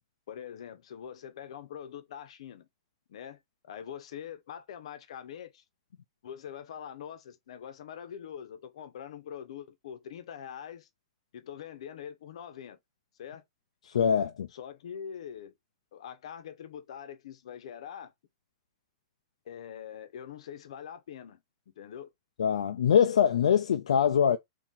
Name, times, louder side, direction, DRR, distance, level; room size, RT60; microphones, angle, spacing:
voice 1, 0.3-2.7 3.1-3.4 3.6-5.6 6.2-10.9 11.3-12.8 13.2-13.4 14.5-15.5 15.9-18.1 19.4-21.4 21.8-22.1, left 8 dB, 70° left, 0.7 m, -43 dB
voice 2, 13.9-14.5 22.4-24.4, left 8 dB, 90° left, 0.4 m, -23 dB
2.9 x 2.7 x 3.8 m
hypercardioid pair, 150°, 3 cm